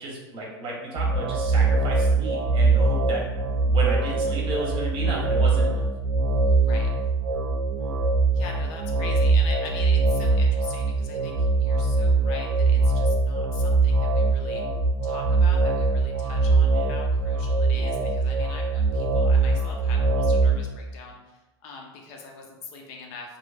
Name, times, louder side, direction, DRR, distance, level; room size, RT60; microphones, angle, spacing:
voice 1, 0.0-3.2 3.6-5.8, right 2 dB, 40° right, -3 dB, 1.1 m, -32 dB
sound 1, 1.0-20.6, right 3 dB, 90° right, 0.5 m, -22 dB
voice 2, 6.5-6.9 8.3-14.6 15.0-23.4, left 4 dB, 55° left, 1 dB, 0.6 m, -42 dB
3.0 x 2.6 x 2.5 m, 1.1 s
hypercardioid pair, 95°, 14 cm